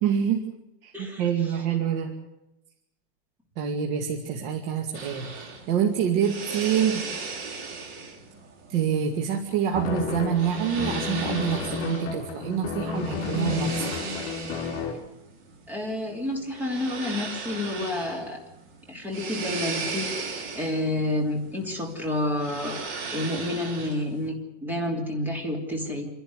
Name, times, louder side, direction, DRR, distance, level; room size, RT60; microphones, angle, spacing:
voice 1, 0.0-0.4 0.8-2.1 3.6-7.0 8.7-13.9, right 8 dB, 55° right, 3 dB, 2.3 m, -26 dB
sound 1, 4.9-24.3, right 4 dB, 35° right, 3.3 m, -38 dB
sound 2, 9.7-14.9, left 5 dB, 50° left, 5.5 m, -31 dB
voice 2, 15.7-18.4 18.9-26.1, left 1 dB, 5° right, 1 dB, 3.1 m, -29 dB
28.0 x 11.5 x 9.7 m, 0.92 s
supercardioid pair, 160°, 35 cm